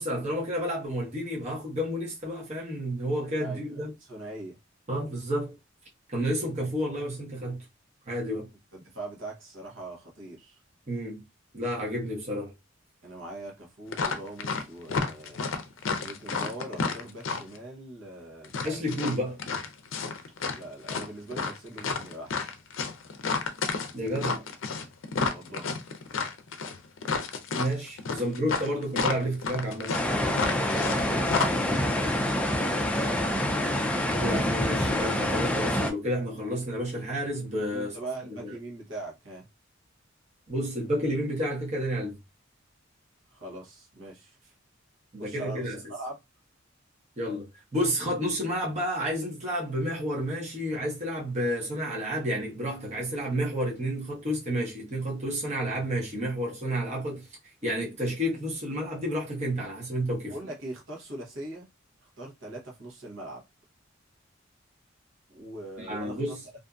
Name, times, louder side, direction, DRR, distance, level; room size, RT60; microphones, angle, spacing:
voice 1, 0.0-3.9 4.9-5.5 6.1-7.6 8.1-8.5 10.9-11.2 11.5-12.5 18.6-19.4 23.9-24.4 27.6-29.9 34.2-38.0 38.4-38.5 40.5-42.2 45.1-45.8 47.2-57.3 57.6-60.3 65.8-66.4, equal, 35° right, 1.0 m, -30 dB
voice 2, 3.4-4.6 8.7-10.6 13.0-15.4 16.0-18.6 20.5-22.4 25.3-25.8 28.1-28.2 31.4-33.3 37.7-39.5 43.3-44.5 45.2-46.2 60.3-61.7 62.0-63.4 65.3-66.2, right 2 dB, 65° right, 0.9 m, -41 dB
sound 1, 13.9-14.6 14.9-17.6 18.4-20.6 20.9-31.0 31.3-31.5, left 4 dB, 80° left, 0.5 m, -30 dB
sound 2, 29.9-35.9, left 1 dB, 5° left, 0.3 m, -26 dB
2.6 x 2.5 x 2.3 m
head